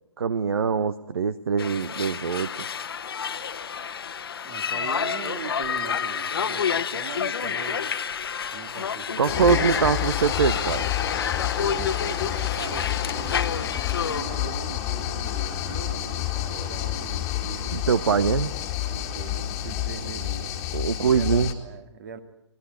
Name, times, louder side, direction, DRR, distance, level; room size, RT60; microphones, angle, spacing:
voice 1, 0.2-2.5 9.2-10.9 17.7-18.5 20.7-21.5, right 6 dB, 55° right, 15 dB, 0.9 m, -23 dB
sound 1, 1.6-14.2, left 7 dB, 50° left, 1.2 m, -29 dB
voice 2, 4.4-7.9 8.5-9.9 11.6-17.8 18.8-20.5 21.0-22.2, right 8 dB, 40° right, 10 dB, 2.1 m, -40 dB
sound 2, 9.3-21.5, left 12 dB, 20° left, 2.0 m, -29 dB
26.0 x 20.5 x 8.1 m, 0.87 s
figure-of-eight pair, 130°, 15 cm